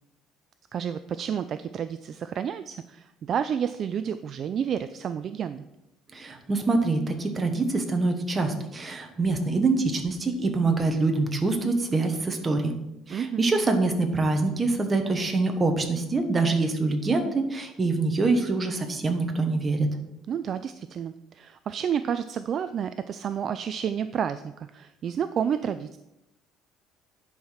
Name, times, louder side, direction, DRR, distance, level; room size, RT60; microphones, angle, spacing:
voice 1, 0.7-5.6 13.1-13.5 20.3-26.0, right 8 dB, 40° right, 11 dB, 0.3 m, -30 dB
voice 2, 6.1-12.7 13.1-19.9, right 3 dB, 20° right, 5 dB, 1.2 m, -25 dB
10.0 x 4.8 x 5.8 m, 0.88 s
cardioid pair, 145°, 0 cm